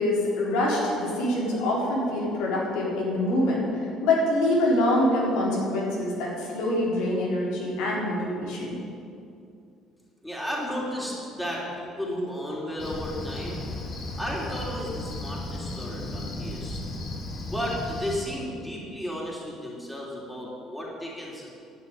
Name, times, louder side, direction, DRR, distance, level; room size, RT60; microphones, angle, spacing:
voice 1, 0.0-8.8, left 1 dB, 85° left, -5 dB, 3.8 m, -25 dB
voice 2, 10.2-13.6 14.2-16.8 17.4-21.5, equal, 5° left, -4 dB, 3.3 m, -33 dB
Cricket, 12.8-18.2, left 2 dB, 50° left, 2.3 m, -35 dB
11.0 x 6.9 x 9.5 m, 2.5 s
cardioid pair, 100°, 0 cm